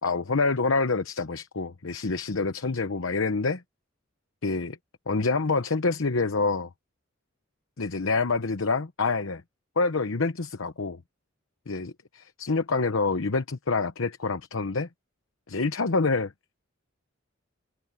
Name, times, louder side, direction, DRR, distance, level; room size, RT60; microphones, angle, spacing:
voice 1, 0.0-3.6 4.4-4.8 5.1-6.7 7.8-9.4 9.8-11.0 11.7-14.9 15.5-16.3, left 3 dB, 80° left, 0.9 m, -27 dB
head